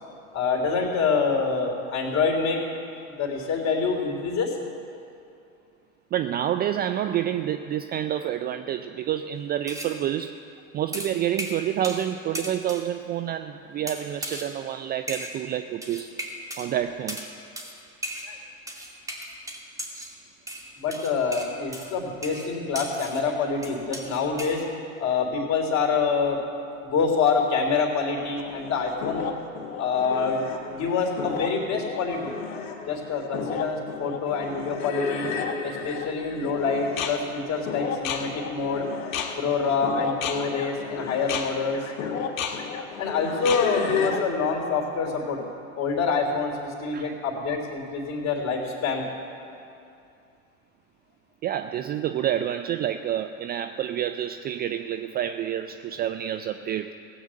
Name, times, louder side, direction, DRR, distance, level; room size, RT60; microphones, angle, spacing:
voice 1, 0.3-2.6 2.9-4.5 18.2-18.4 20.8-26.4 26.8-29.3 29.8-32.3 32.9-35.3 35.6-38.8 39.4-42.1 42.6-45.4 45.8-49.0, left 5 dB, 40° left, 0 dB, 3.4 m, -26 dB
voice 2, 6.1-10.4 10.7-16.2 16.6-17.3 46.9-47.1 51.4-56.9, right 11 dB, 25° right, 9 dB, 0.4 m, -28 dB
sound 1, 9.7-10.0 10.9-12.1 12.3-12.9 13.9-14.5 15.1-15.4 15.8-16.7 17.1-17.3 17.6-17.7 18.0-18.3 18.7-20.1 20.5-23.3 23.6-24.6, equal, 10° right, 2.4 m, -36 dB
sound 2, 28.4-44.3, left 6 dB, 70° left, 1.7 m, -32 dB
16.5 x 8.7 x 7.6 m, 2.5 s
hypercardioid pair, 95°, 41 cm